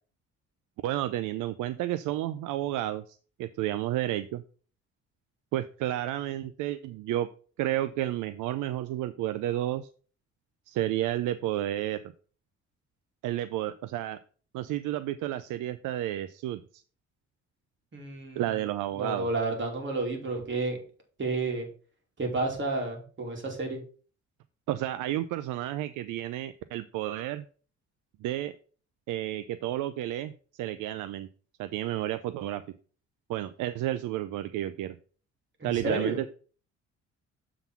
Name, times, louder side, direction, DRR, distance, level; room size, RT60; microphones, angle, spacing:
voice 1, 0.8-4.4 5.5-7.3 7.6-9.9 10.7-12.0 13.2-14.2 14.5-16.8 18.4-19.3 24.7-27.4 28.2-28.6 29.1-31.3 31.6-32.6 33.3-35.0 35.6-36.3, right 13 dB, 85° right, 12 dB, 0.5 m, -31 dB
voice 2, 17.9-18.4 18.9-20.8 21.2-21.7 22.2-23.8 35.6-36.2, right 3 dB, 40° right, 1 dB, 2.8 m, -31 dB
6.9 x 3.9 x 5.9 m, 0.41 s
cardioid pair, 90°, 30 cm